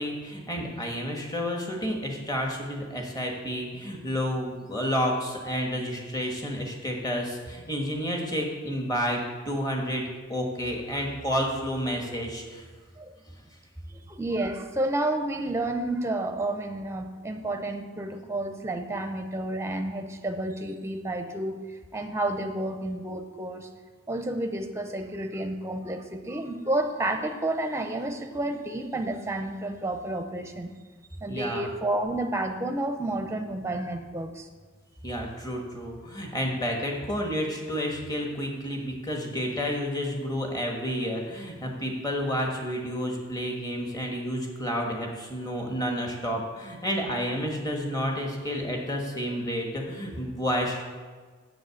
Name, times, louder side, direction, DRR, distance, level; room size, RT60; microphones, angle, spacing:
voice 1, 0.0-9.2 9.4-12.6 31.3-31.7 35.0-50.8, equal, 20° left, 1 dB, 1.4 m, -30 dB
voice 2, 13.9-21.6 21.9-23.7 24.1-30.7 31.2-34.5, right 1 dB, 15° right, 6 dB, 0.7 m, -30 dB
7.7 x 7.3 x 7.0 m, 1.4 s
head